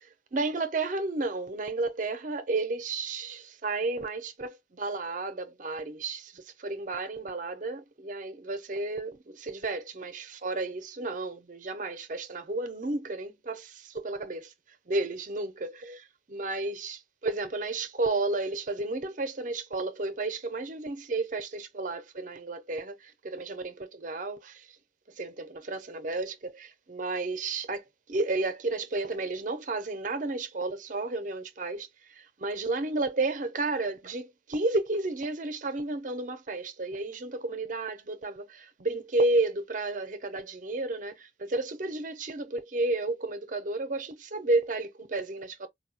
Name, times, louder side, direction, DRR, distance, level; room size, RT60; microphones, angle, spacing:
voice 1, 0.0-14.5 14.9-24.8 25.2-45.7, right 2 dB, 40° right, 0.5 m, -32 dB
4.1 x 2.3 x 2.7 m
head